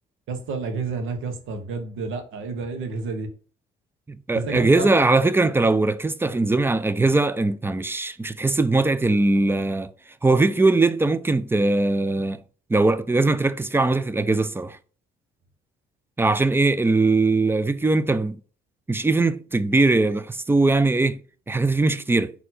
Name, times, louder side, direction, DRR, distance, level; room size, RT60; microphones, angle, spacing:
voice 1, 0.3-3.3 4.3-5.0, right 4 dB, 85° right, 1.0 m, -30 dB
voice 2, 4.3-9.9 10.2-12.4 12.7-14.8 16.2-18.4 18.9-21.2 21.5-22.3, right 3 dB, 10° right, 0.4 m, -20 dB
4.3 x 2.7 x 4.2 m
cardioid pair, 90°, 20 cm